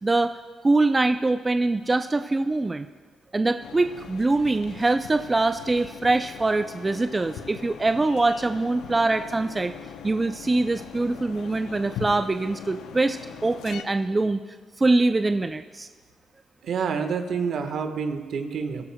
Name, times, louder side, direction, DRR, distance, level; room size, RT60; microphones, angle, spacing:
voice 1, 0.0-0.3 0.6-2.9 3.3-9.7 10.0-14.4 14.8-15.9, right 2 dB, 20° right, 9 dB, 0.4 m, -23 dB
sound 1, 3.6-13.8, left 8 dB, 80° left, 0.6 m, -41 dB
voice 2, 16.6-18.8, right 6 dB, 65° right, 6 dB, 1.2 m, -28 dB
21.5 x 13.0 x 2.2 m, 1.5 s
cardioid pair, 90°, 0 cm